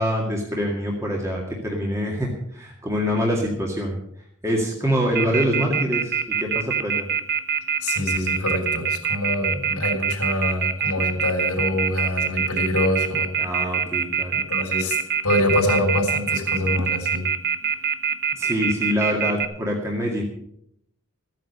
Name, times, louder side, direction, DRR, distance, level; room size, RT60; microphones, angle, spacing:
voice 1, 0.0-4.0 4.4-7.1 13.4-14.3 18.3-20.2, equal, 15° right, -1 dB, 2.0 m, -25 dB
Telephone, 5.2-19.5, right 7 dB, 45° right, 1.0 m, -23 dB
voice 2, 7.8-13.3 14.3-15.0 15.2-17.3, left 1 dB, 80° left, 0 dB, 3.7 m, -25 dB
14.5 x 9.2 x 6.7 m, 0.71 s
head